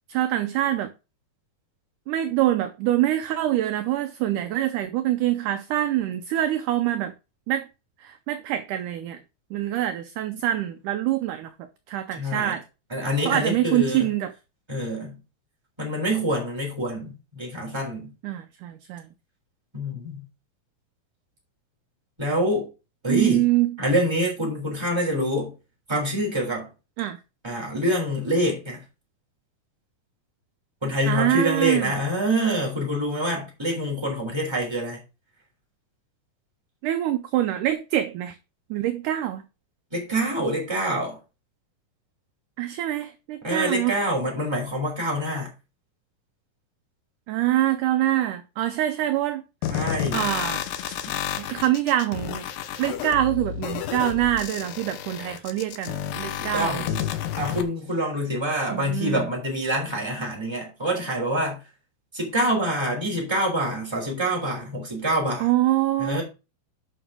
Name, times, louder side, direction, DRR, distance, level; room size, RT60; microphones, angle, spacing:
voice 1, 0.1-0.9 2.1-7.1 7.5-7.7 8.0-9.2 9.5-12.6 13.3-14.3 18.2-19.1 23.1-23.7 27.0-27.2 31.1-31.9 36.8-38.4 38.7-39.4 42.6-43.9 47.3-49.4 49.7-49.8 50.1-50.6 51.4-52.5 52.8-57.1 58.7-59.3 65.4-66.2, right 13 dB, 75° right, 2.0 m, -25 dB
voice 2, 12.2-12.6 12.9-14.1 14.7-15.2 15.8-18.1 19.7-20.2 22.2-22.7 23.0-23.5 23.8-25.5 25.9-26.7 27.4-28.8 30.8-35.0 39.9-41.2 43.4-45.5 49.7-50.3 51.0-51.1 56.4-57.0 57.4-61.6 62.1-65.5 66.0-66.2, equal, 5° right, 3.2 m, -26 dB
sound 1, 49.6-57.6, left 10 dB, 80° left, 2.7 m, -31 dB
11.0 x 5.6 x 3.7 m
omnidirectional pair, 4.1 m